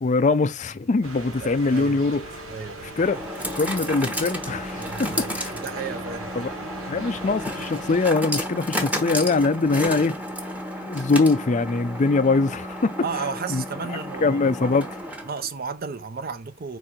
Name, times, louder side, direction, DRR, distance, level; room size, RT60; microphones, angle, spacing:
voice 1, 0.0-2.2 3.0-3.2 3.6-5.5 6.4-6.5 6.9-10.2 10.8-12.9 13.5-13.6 14.2-14.9, left 3 dB, 35° left, 0.4 m, -22 dB
sound 1, 1.0-8.1, right 1 dB, 90° right, 2.0 m, -40 dB
voice 2, 1.4-2.0 2.5-2.9 4.8-5.2 5.5-6.3 13.0-14.8 15.2-16.8, right 5 dB, 45° right, 0.6 m, -33 dB
sound 2, 1.6-15.5, equal, 5° right, 1.0 m, -32 dB
sound 3, 4.8-9.0, right 3 dB, 60° right, 1.5 m, -48 dB
4.8 x 4.4 x 5.0 m
head